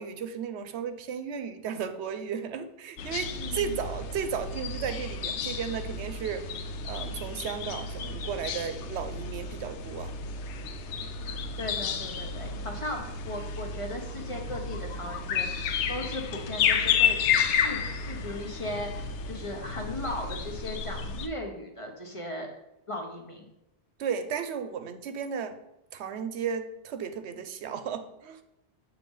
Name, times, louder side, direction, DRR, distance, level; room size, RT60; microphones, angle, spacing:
voice 1, 0.0-6.5 6.8-10.1 24.0-25.6 25.9-28.4, right 7 dB, 75° right, 9 dB, 0.9 m, -34 dB
sound 1, 3.0-21.3, left 6 dB, 90° left, 0.9 m, -31 dB
voice 2, 3.4-3.8 11.2-22.5 22.9-23.5, left 1 dB, 30° left, 2 dB, 0.9 m, -37 dB
7.6 x 3.1 x 5.4 m, 0.88 s
omnidirectional pair, 1.1 m